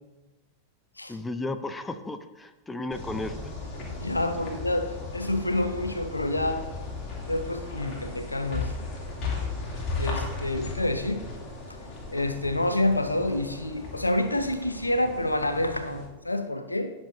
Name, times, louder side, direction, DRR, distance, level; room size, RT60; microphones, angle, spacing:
voice 1, 1.1-3.4, left 2 dB, 10° left, 10 dB, 0.7 m, -34 dB
sound 1, 2.9-16.0, left 3 dB, 35° left, 2.8 m, -36 dB
voice 2, 4.0-6.7 7.3-8.7 10.0-11.2 12.1-16.9, left 1 dB, 85° left, 9 dB, 0.8 m, -28 dB
17.5 x 7.1 x 2.7 m, 1.1 s
figure-of-eight pair, 90°, 0 cm